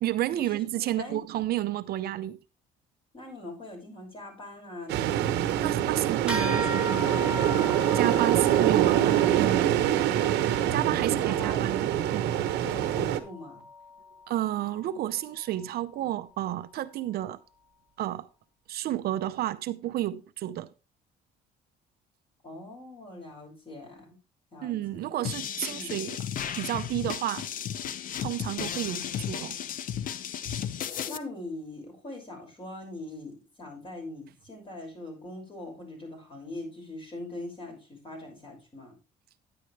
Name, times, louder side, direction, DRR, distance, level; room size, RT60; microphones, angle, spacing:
voice 1, 0.0-2.4 5.6-7.2 7.9-10.0 10.7-12.3 14.3-17.4 18.0-18.3 18.7-20.7 24.6-26.3 26.6-27.5 28.2-29.6, right 13 dB, 65° right, 0.6 m, -31 dB
voice 2, 0.5-1.2 3.1-5.8 8.7-9.1 10.8-11.7 12.6-13.6 22.4-24.2 24.5-25.1 25.6-25.9 31.1-38.9, left 2 dB, 30° left, 5.9 m, -42 dB
sound 1, 4.9-13.2, right 12 dB, 85° right, 1.0 m, -25 dB
sound 2, 6.3-16.1, left 1 dB, 5° right, 2.2 m, -39 dB
sound 3, 25.2-31.2, left 9 dB, 55° left, 0.7 m, -34 dB
10.0 x 9.6 x 3.2 m
cardioid pair, 110°, 17 cm